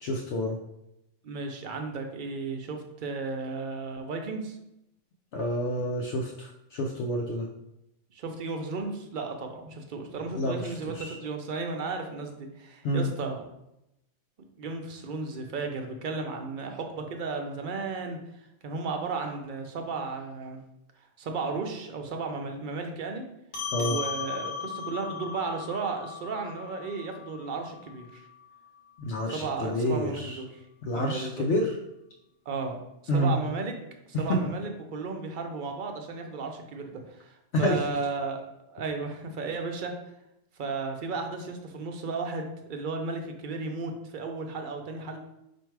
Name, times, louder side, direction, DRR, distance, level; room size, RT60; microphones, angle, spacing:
voice 1, 0.0-0.6 5.3-7.5 10.3-11.1 12.8-13.1 23.7-24.0 29.0-30.4 30.8-31.7 33.1-33.4 34.1-34.4 37.5-37.8, equal, 75° left, 0 dB, 0.8 m, -28 dB
voice 2, 1.2-4.6 8.1-13.4 14.4-18.2 18.6-20.6 21.2-23.2 23.8-28.2 29.3-30.6 30.9-31.5 32.5-32.8 33.1-33.7 34.2-39.9 40.6-45.2, right 4 dB, 50° right, 4 dB, 0.7 m, -34 dB
sound 1, 23.5-28.3, left 6 dB, 50° left, 1.1 m, -37 dB
4.4 x 2.6 x 4.5 m, 0.85 s
omnidirectional pair, 1.2 m